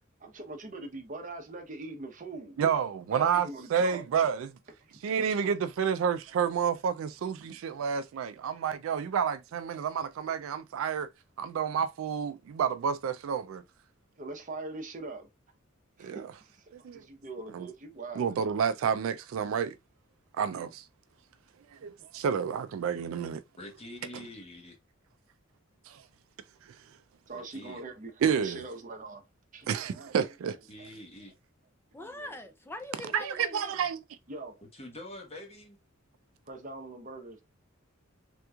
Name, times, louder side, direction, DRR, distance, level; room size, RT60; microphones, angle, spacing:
voice 1, 0.2-2.6 3.1-4.0 4.8-4.9 14.2-15.3 16.0-18.4 27.3-29.2 29.5-30.1 30.8-30.9 32.0-32.3 34.3-34.6 35.4-35.5 36.5-37.4, right 3 dB, 40° right, 0.8 m, -42 dB
voice 2, 2.6-4.6 5.0-11.1 11.4-13.6 16.0-16.3 16.7-17.0 17.5-17.7 18.2-19.8 20.4-20.8 21.8-23.4 25.9-26.0 28.2-28.6 29.7-30.6 33.1-34.0, right 7 dB, 70° right, 0.3 m, -30 dB
voice 3, 23.6-24.7 27.3-27.8 30.5-31.3 34.6-35.8, left 1 dB, 30° left, 1.0 m, -46 dB
voice 4, 31.9-33.8, left 1 dB, 10° left, 0.4 m, -42 dB
3.4 x 2.9 x 2.3 m
head